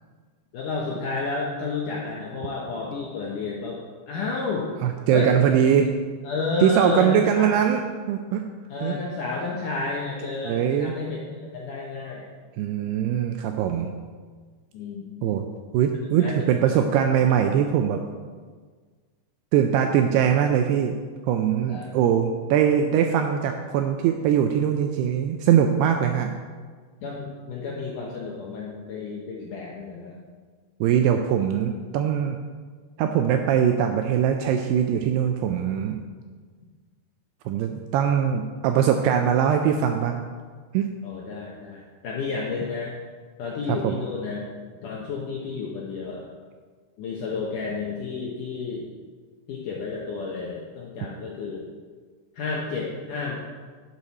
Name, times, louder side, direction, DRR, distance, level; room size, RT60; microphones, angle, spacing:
voice 1, 0.5-3.8 4.1-4.7 5.1-5.4 6.2-7.6 8.7-12.3 14.7-15.4 16.2-16.8 21.7-21.9 27.0-30.2 41.0-42.9 43.4-44.4 44.8-46.2 47.0-48.9 49.5-51.7 52.3-53.4, left 4 dB, 85° left, -3 dB, 1.8 m, -31 dB
voice 2, 4.8-5.9 6.6-7.8 8.1-8.4 8.8-9.0 10.4-10.9 12.6-13.9 15.2-15.4 15.7-18.0 19.5-21.0 21.3-26.3 30.8-32.4 33.0-36.0 37.5-40.2 40.7-40.9 43.7-44.0, right 9 dB, 85° right, 5 dB, 2.4 m, -22 dB
11.5 x 7.6 x 4.2 m, 1.5 s
omnidirectional pair, 5.1 m